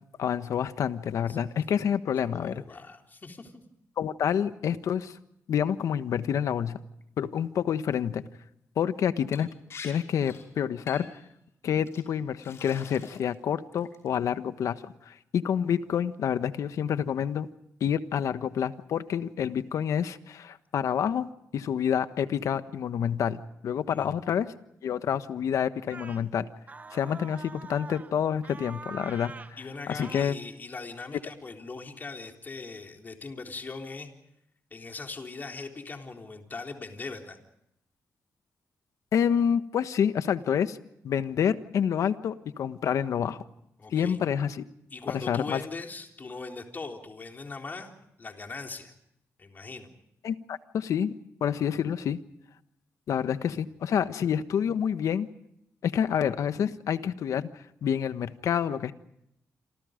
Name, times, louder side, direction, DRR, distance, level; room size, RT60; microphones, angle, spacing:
voice 1, 0.2-2.6 4.0-5.2 5.5-6.8 7.2-8.2 8.8-9.5 9.8-11.1 11.6-17.5 17.8-21.3 21.5-24.5 24.8-26.5 26.9-29.3 29.9-30.4 39.1-40.8 41.0-43.4 43.9-44.6 45.1-45.6 50.2-51.1 51.4-52.2 53.1-55.3 55.8-57.5 57.8-58.9, left 8 dB, 75° left, 11 dB, 1.3 m, -28 dB
voice 2, 2.3-3.6 23.9-24.2 29.6-34.1 34.7-37.4 43.8-44.2 44.9-48.9 49.4-49.9 53.5-53.6, left 3 dB, 35° left, 3 dB, 3.8 m, -40 dB
Liquid, 9.3-9.4 9.7-9.9 10.2-10.5 10.9-11.2 11.9-12.0 12.4-13.3 13.7-14.2, left 5 dB, 55° left, 5.5 m, -44 dB
sound 1, 25.9-26.3 26.7-28.1 28.4-29.5 30.0-30.3, right 4 dB, 30° right, 1.3 m, -44 dB
28.0 x 27.0 x 5.2 m, 0.78 s
cardioid pair, 110°, 6 cm